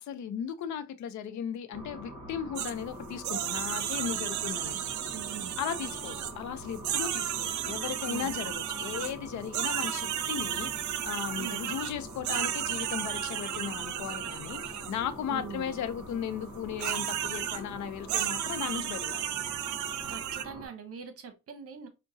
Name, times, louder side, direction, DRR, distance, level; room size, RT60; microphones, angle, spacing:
voice 1, 0.1-4.8 5.6-19.4, left 8 dB, 70° left, 0.6 m, -36 dB
sound 1, 1.7-20.7, equal, 25° right, 1.8 m, -44 dB
sound 2, 2.6-2.7 3.2-6.3 6.7-9.1 9.5-15.0 16.8-17.6 18.1-20.4, right 11 dB, 70° right, 0.5 m, -33 dB
voice 2, 5.1-5.5 8.0-8.3 11.4-11.6 15.3-15.7 20.1-21.9, right 6 dB, 50° right, 0.9 m, -42 dB
4.5 x 2.2 x 2.6 m
cardioid pair, 90°, 30 cm